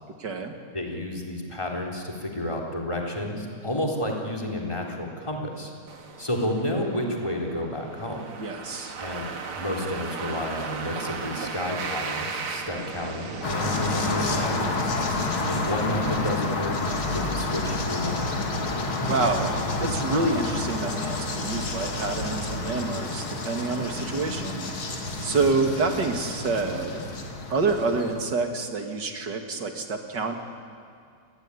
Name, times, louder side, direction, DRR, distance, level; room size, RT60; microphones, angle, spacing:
voice 1, 0.2-0.5 8.4-9.0 19.1-24.7 25.2-27.0 27.5-30.4, right 3 dB, 55° right, 4 dB, 2.9 m, -27 dB
voice 2, 0.7-5.7 6.2-8.3 9.0-9.3 9.5-14.9 15.4-16.8 17.1-18.3, left 1 dB, 15° left, 1 dB, 3.8 m, -31 dB
sound 1, 5.9-17.0, right 5 dB, 85° right, 2.8 m, -37 dB
sound 2, 13.4-28.2, left 2 dB, 75° left, 3.4 m, -29 dB
29.0 x 20.5 x 10.0 m, 2.2 s
omnidirectional pair, 2.3 m